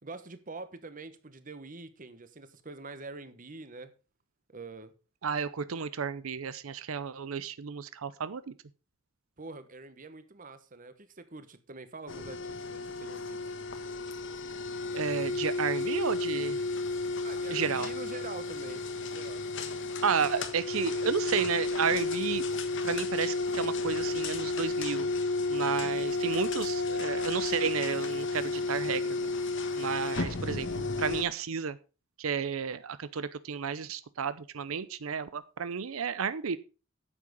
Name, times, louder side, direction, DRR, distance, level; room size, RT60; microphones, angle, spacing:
voice 1, 0.0-3.9 4.5-4.9 9.4-13.5 17.2-19.4, right 3 dB, 40° right, 1.2 m, -45 dB
voice 2, 5.2-8.5 14.9-16.6 17.5-17.9 20.0-22.4 22.8-25.1 25.5-29.3 29.8-31.8 32.2-36.6, right 6 dB, 90° right, 0.6 m, -32 dB
sound 1, 12.1-31.2, left 3 dB, 60° left, 1.4 m, -32 dB
9.9 x 7.6 x 5.3 m
head